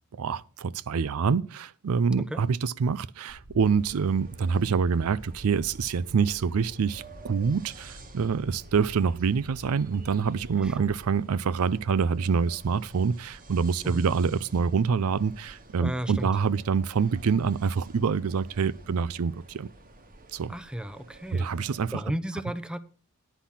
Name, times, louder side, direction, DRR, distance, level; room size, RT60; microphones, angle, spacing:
voice 1, 0.2-19.7 20.3-20.5 21.3-22.0, right 6 dB, 80° right, 0.4 m, -26 dB
sound 1, 3.3-11.1, equal, 60° right, 1.4 m, -48 dB
sound 2, 3.6-22.0, right 2 dB, 40° right, 1.2 m, -51 dB
voice 2, 15.8-16.3 20.5-21.5 21.9-22.8, right 1 dB, 5° right, 0.6 m, -34 dB
10.0 x 5.8 x 7.1 m
head